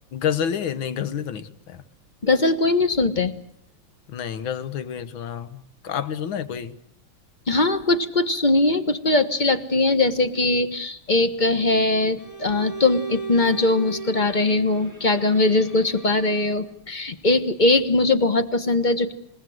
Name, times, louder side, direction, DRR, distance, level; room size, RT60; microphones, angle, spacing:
voice 1, 0.1-1.8 4.1-6.8, left 8 dB, 70° left, 2.0 m, -29 dB
voice 2, 2.2-3.3 7.5-19.1, left 2 dB, 25° left, 1.3 m, -21 dB
Bowed string instrument, 12.2-16.7, right 4 dB, 5° left, 6.7 m, -37 dB
28.5 x 17.5 x 7.9 m
omnidirectional pair, 2.3 m